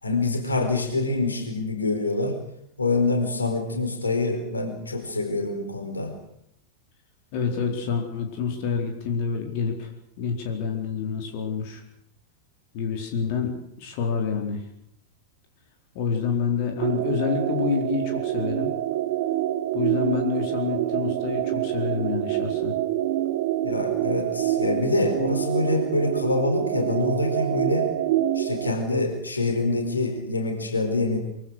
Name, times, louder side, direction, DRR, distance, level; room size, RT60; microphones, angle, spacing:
voice 1, 0.0-2.4 2.8-6.1 23.6-27.9 28.3-31.2, left 3 dB, 80° left, 5 dB, 4.5 m, -25 dB
voice 2, 7.3-9.9 10.2-11.8 12.7-14.6 15.9-18.7 19.7-22.8, left 6 dB, 45° left, 3 dB, 4.3 m, -28 dB
sound 1, 16.8-28.7, right 13 dB, 50° right, 1.1 m, -26 dB
24.0 x 24.0 x 6.5 m, 0.72 s
figure-of-eight pair, 90°, 0 cm